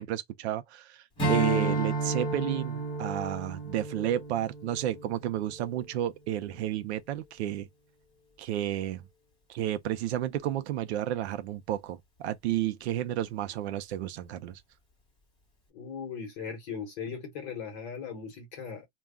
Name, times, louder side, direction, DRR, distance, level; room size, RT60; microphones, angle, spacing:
voice 1, 0.0-7.7 8.4-9.1 9.5-14.6, right 12 dB, 70° right, 0.6 m, -32 dB
Strum, 1.2-5.9, right 2 dB, 15° left, 1.1 m, -31 dB
voice 2, 15.7-18.9, left 6 dB, 40° left, 1.1 m, -38 dB
2.3 x 2.3 x 3.5 m
supercardioid pair, 165°, 34 cm